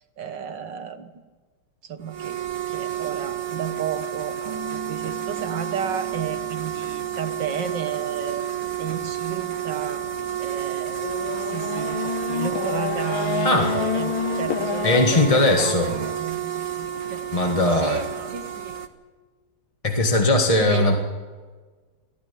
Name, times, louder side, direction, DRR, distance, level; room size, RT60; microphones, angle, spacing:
voice 1, 0.2-1.1 1.8-2.4 2.7-8.4 8.8-10.0 10.4-17.2 17.8-18.8 20.6-21.0, right 7 dB, 60° right, 9 dB, 1.9 m, -33 dB
sound 1, 2.0-18.9, right 10 dB, 45° right, 1.7 m, -30 dB
sound 2, 4.5-10.7, right 4 dB, 75° right, 3.6 m, -44 dB
Race car auto racing / Accelerating revving vroom, 11.0-16.2, left 8 dB, 75° left, 1.8 m, -29 dB
voice 2, 14.8-15.9 17.3-18.0 19.8-21.0, left 2 dB, 20° left, 2 dB, 1.6 m, -19 dB
23.0 x 15.0 x 9.4 m, 1.4 s
omnidirectional pair, 2.3 m